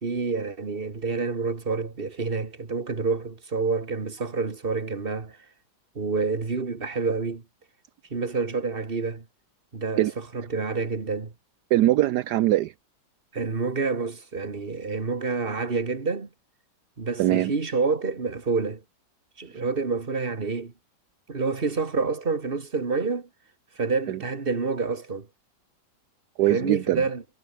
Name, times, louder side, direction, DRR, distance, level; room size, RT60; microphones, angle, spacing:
voice 1, 0.0-5.4 6.0-7.4 8.1-9.2 9.7-11.3 13.3-16.3 17.0-18.8 19.4-20.7 21.3-23.3 23.8-25.3 26.5-27.2, right 4 dB, 30° right, 2.3 m, -28 dB
voice 2, 11.7-12.7 17.2-17.5 24.1-24.2 26.4-27.0, right 14 dB, 70° right, 1.2 m, -22 dB
omnidirectional pair, 1.9 m